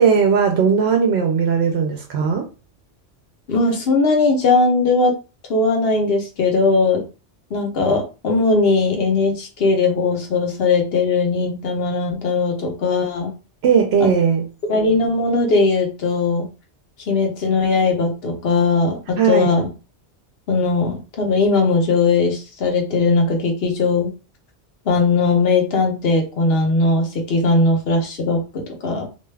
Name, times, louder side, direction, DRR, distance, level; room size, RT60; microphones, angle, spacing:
voice 1, 0.0-2.5 13.6-14.5 19.2-19.5, right 6 dB, 75° right, 3 dB, 0.8 m, -17 dB
voice 2, 3.5-5.1 5.5-7.0 7.5-13.3 14.0-14.1 14.7-16.5 17.1-19.7 20.5-24.1 24.9-29.1, left 3 dB, 65° left, 2 dB, 1.0 m, -19 dB
2.6 x 2.3 x 3.2 m, 0.32 s
omnidirectional pair, 1.1 m